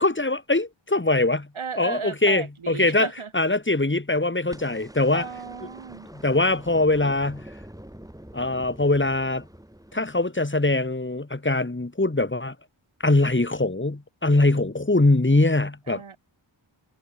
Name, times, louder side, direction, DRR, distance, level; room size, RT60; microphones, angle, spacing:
voice 1, 0.0-1.5 1.8-3.1 3.3-5.3 6.1-7.5 8.3-9.4 9.9-12.5 13.0-16.0, left 2 dB, 25° left, 4.0 m, -22 dB
voice 2, 1.6-3.3 5.1-6.1 15.9-16.2, right 6 dB, 85° right, 3.5 m, -35 dB
sound 1, 4.5-10.7 12.2-12.3, right 1 dB, 5° right, 6.2 m, -45 dB
wide cardioid pair, 70°, 48 cm